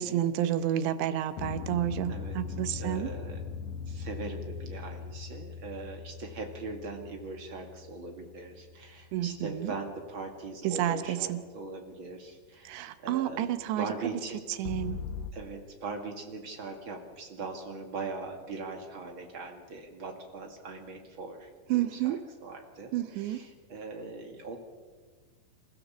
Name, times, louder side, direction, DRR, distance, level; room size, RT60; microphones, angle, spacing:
voice 1, 0.0-3.1 9.1-9.7 10.6-11.4 12.7-13.9 14.6-15.0 21.7-22.2 22.9-23.4, right 12 dB, 80° right, 11 dB, 3.1 m, -30 dB
sound 1, 1.4-9.7 14.6-15.3, left 6 dB, 90° left, 1.8 m, -40 dB
voice 2, 2.1-2.4 2.8-3.4 3.9-14.5 15.3-24.6, right 3 dB, 45° right, 3 dB, 1.8 m, -40 dB
28.0 x 15.5 x 7.2 m, 1.5 s
omnidirectional pair, 5.0 m